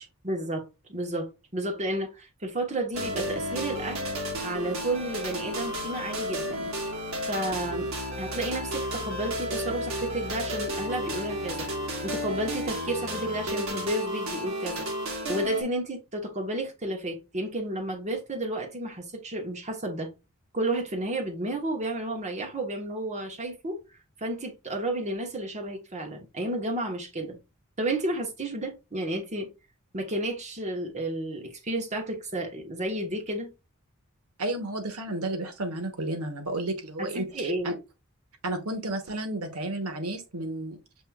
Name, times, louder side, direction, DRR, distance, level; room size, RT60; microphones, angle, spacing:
voice 1, 0.2-4.1 4.4-6.7 7.2-7.9 8.2-11.7 12.0-14.9 15.3-20.1 20.5-23.8 24.2-27.4 27.8-29.5 29.9-33.5 37.0-37.7, right 1 dB, 35° right, 1.3 m, -32 dB
sound 1, 2.9-15.6, equal, 65° right, 1.5 m, -32 dB
voice 2, 34.4-37.7 38.4-40.8, right 1 dB, 90° right, 1.1 m, -32 dB
7.5 x 3.0 x 2.4 m
head